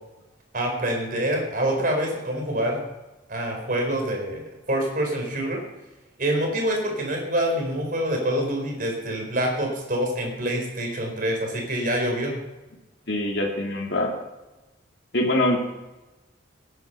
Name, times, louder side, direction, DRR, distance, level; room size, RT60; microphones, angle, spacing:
voice 1, 0.5-2.8 3.3-5.6 6.2-12.4, right 1 dB, 50° right, 2 dB, 4.4 m, -26 dB
voice 2, 13.1-14.1 15.1-15.6, left 1 dB, 65° left, -1 dB, 2.4 m, -23 dB
17.0 x 9.8 x 5.5 m, 1.1 s
head